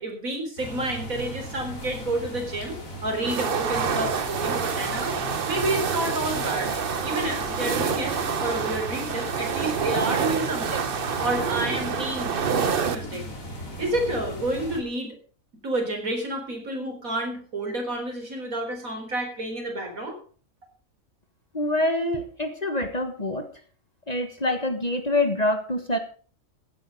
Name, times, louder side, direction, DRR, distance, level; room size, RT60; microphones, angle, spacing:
voice 1, 0.0-2.8 3.0-5.2 5.4-6.7 7.0-10.9 11.2-13.2 13.8-15.1 15.6-20.2, right 1 dB, 75° right, 3 dB, 4.5 m, -29 dB
sound 1, 0.6-14.8, equal, 75° left, 3.8 m, -37 dB
sound 2, 3.2-13.0, right 6 dB, 45° right, 1.0 m, -27 dB
voice 2, 21.5-23.5 24.1-26.0, left 1 dB, 30° left, 7 dB, 1.6 m, -25 dB
15.5 x 9.6 x 5.3 m, 0.41 s
omnidirectional pair, 1.4 m